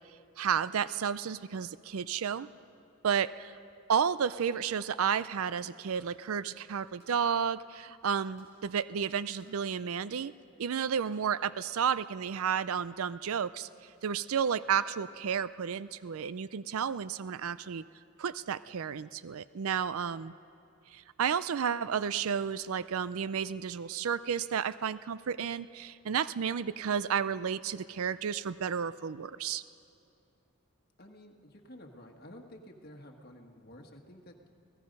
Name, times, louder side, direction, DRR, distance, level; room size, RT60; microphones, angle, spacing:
voice 1, 0.4-2.5 3.0-3.5 3.9-10.3 10.6-13.7 14.0-17.8 18.2-20.3 20.9-29.6, right 7 dB, 70° right, 16 dB, 0.4 m, -32 dB
sound 1, 4.2-5.6 5.9-6.3 7.0-7.6 7.9-8.0 8.4-8.7 9.3-10.4 10.8-11.3 11.7-12.5, equal, 50° right, 7.0 m, -64 dB
voice 2, 31.0-34.5, left 1 dB, 45° left, 2 dB, 1.6 m, -51 dB
29.0 x 18.0 x 5.4 m, 2.6 s
head